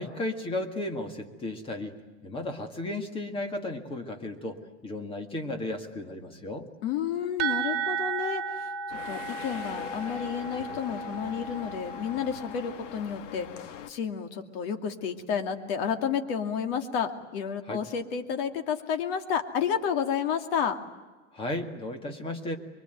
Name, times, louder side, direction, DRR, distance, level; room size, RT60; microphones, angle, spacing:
voice 1, 0.0-1.9 2.2-6.7 17.7-17.8 21.3-22.6, left 1 dB, 15° left, 5 dB, 2.0 m, -34 dB
voice 2, 6.8-8.7 9.1-13.5 13.9-20.8, left 7 dB, 55° left, 6 dB, 2.5 m, -31 dB
sound 1, 7.4-13.0, right 6 dB, 40° right, 2.8 m, -34 dB
sound 2, 8.9-13.9, left 9 dB, 85° left, 1.8 m, -42 dB
24.5 x 23.0 x 9.2 m, 1.3 s
supercardioid pair, 175°, 36 cm